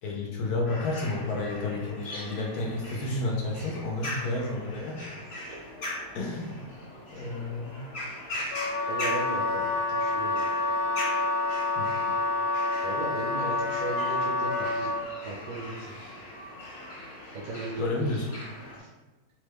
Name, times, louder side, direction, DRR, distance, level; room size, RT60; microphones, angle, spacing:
voice 1, 0.0-5.0 6.1-6.7 7.1-7.8 11.8-11.9 17.8-18.3, left 2 dB, 75° left, -2 dB, 1.0 m, -31 dB
sound 1, 0.6-18.8, left 1 dB, 50° left, 0.8 m, -40 dB
Wind instrument woodwind instrument, 8.5-15.0, left 3 dB, 90° left, 0.6 m, -28 dB
voice 2, 8.8-10.4 12.8-14.9 15.2-16.0 17.3-18.1 18.8-18.9, right 2 dB, 70° right, -4 dB, 1.1 m, -37 dB
2.9 x 2.2 x 3.3 m, 1.1 s
omnidirectional pair, 1.8 m